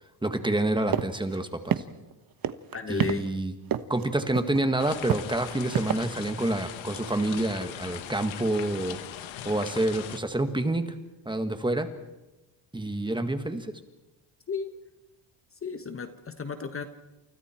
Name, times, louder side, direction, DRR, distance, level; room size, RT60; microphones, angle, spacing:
voice 1, 0.2-1.8 2.9-3.5 3.9-10.8 11.3-11.9 12.7-13.7, right 1 dB, 10° right, 8 dB, 1.8 m, -28 dB
sound 1, 0.9-1.0 1.3-1.4 1.7-2.1 2.4-3.1 3.7-4.0 4.3-4.6 5.1-5.9, right 10 dB, 50° right, 1.2 m, -26 dB
voice 2, 2.7-3.3 14.5-14.7 15.6-16.8, left 5 dB, 30° left, 9 dB, 1.3 m, -33 dB
sound 2, 4.8-10.2, left 11 dB, 75° left, 1.6 m, -40 dB
30.0 x 28.5 x 4.5 m, 1.0 s
cardioid pair, 130°, 47 cm